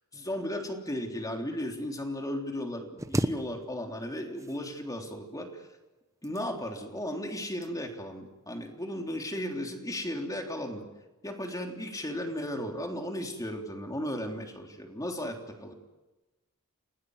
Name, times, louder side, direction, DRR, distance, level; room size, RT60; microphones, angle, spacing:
voice 1, 0.1-5.7 6.2-10.9 11.2-15.7, left 1 dB, 15° left, 2 dB, 3.4 m, -35 dB
sound 1, 3.0-4.1 4.3-5.1 6.0-6.8 7.4-7.7 8.2-8.4, right 1 dB, 15° right, 1.0 m, -34 dB
29.0 x 19.5 x 8.0 m, 1.1 s
head